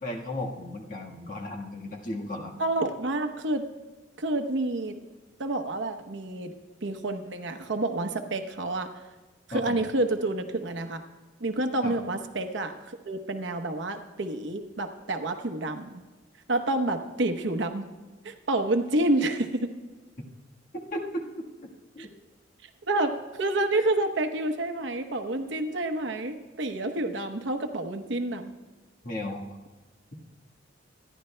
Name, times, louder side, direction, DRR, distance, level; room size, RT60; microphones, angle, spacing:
voice 1, 0.0-2.5 9.5-9.8 11.8-12.0 20.9-22.1 29.0-29.4, left 1 dB, 45° left, -1 dB, 1.5 m, -35 dB
voice 2, 2.6-3.6 4.2-5.0 5.4-6.5 6.8-8.9 9.5-11.0 11.4-16.0 16.5-17.9 18.2-19.7 22.0-22.1 22.9-23.1 23.4-28.5, right 2 dB, 70° right, 7 dB, 0.9 m, -29 dB
26.0 x 11.0 x 2.2 m, 1.2 s
head